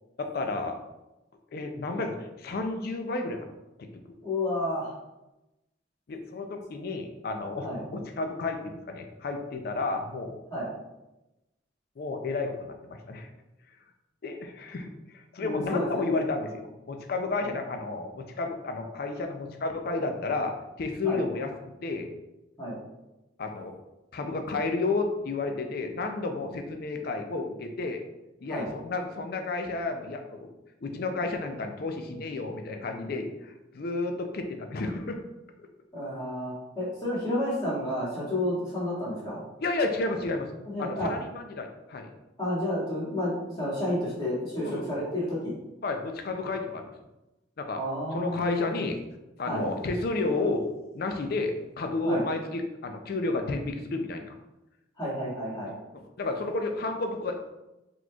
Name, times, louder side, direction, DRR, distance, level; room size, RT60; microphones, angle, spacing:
voice 1, 0.2-0.8 1.5-3.5 3.8-3.9 6.1-10.4 12.0-13.3 14.2-21.5 21.8-22.1 23.4-23.7 24.1-28.0 28.4-30.5 30.8-35.2 39.6-40.5 40.8-42.1 44.6-45.0 45.8-46.9 47.6-47.8 48.1-49.0 49.4-50.7 50.9-54.4 55.9-57.5, left 3 dB, 55° left, 5 dB, 0.4 m, -31 dB
voice 2, 4.2-4.9 7.6-7.8 10.5-10.7 15.4-16.1 21.0-21.2 22.6-22.8 28.5-28.7 35.9-39.4 40.7-41.1 42.4-45.5 47.7-48.7 49.4-49.6 52.0-52.2 55.0-55.7, left 1 dB, 20° left, -8 dB, 1.4 m, -31 dB
4.1 x 3.0 x 2.3 m, 0.99 s
head